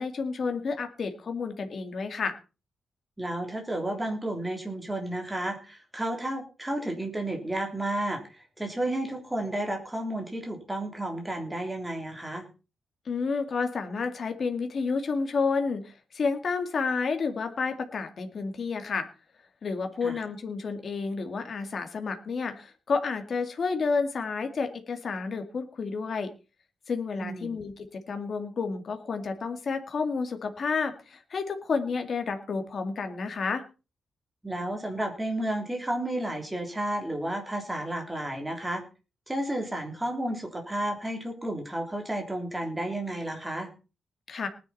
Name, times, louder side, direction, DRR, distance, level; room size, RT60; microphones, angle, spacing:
voice 1, 0.0-2.4 13.1-19.1 19.6-26.3 26.9-33.6 44.3-44.5, left 4 dB, 40° left, 6 dB, 2.2 m, -30 dB
voice 2, 3.2-12.4 20.0-20.2 27.2-27.5 34.4-38.8 39.3-43.7, right 1 dB, 10° right, 2 dB, 3.3 m, -32 dB
19.0 x 10.5 x 4.3 m, 0.33 s
wide cardioid pair, 170°, 0 cm